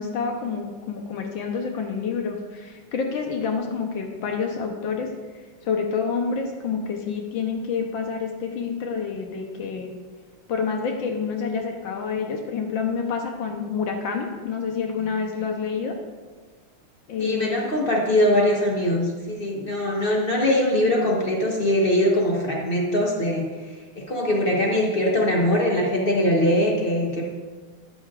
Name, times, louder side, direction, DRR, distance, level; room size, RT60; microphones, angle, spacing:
voice 1, 0.0-5.1 5.6-9.9 10.5-15.9 17.1-17.6, left 5 dB, 70° left, 2 dB, 1.5 m, -28 dB
voice 2, 17.2-23.5 24.0-27.2, left 1 dB, 40° left, -1 dB, 0.8 m, -22 dB
12.0 x 8.9 x 2.4 m, 1.4 s
omnidirectional pair, 2.3 m